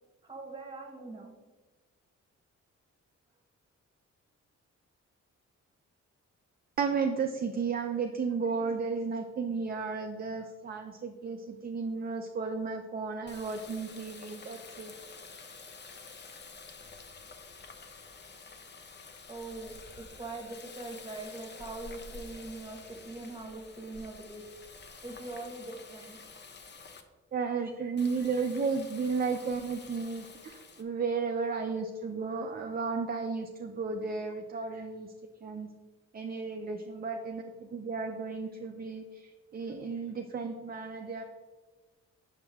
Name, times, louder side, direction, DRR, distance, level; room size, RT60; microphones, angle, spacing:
voice 1, 0.2-1.3 19.3-24.4 25.0-26.2, right 2 dB, 15° right, 2 dB, 1.2 m, -42 dB
voice 2, 6.8-14.9 27.3-35.1 35.4-35.7 36.1-41.2, right 5 dB, 30° right, 4 dB, 0.4 m, -33 dB
Water tap faucet, 13.3-27.0 28.0-30.8, left 4 dB, 35° left, 0.7 m, -49 dB
5.7 x 5.3 x 3.4 m, 1.3 s
cardioid pair, 95°, 29 cm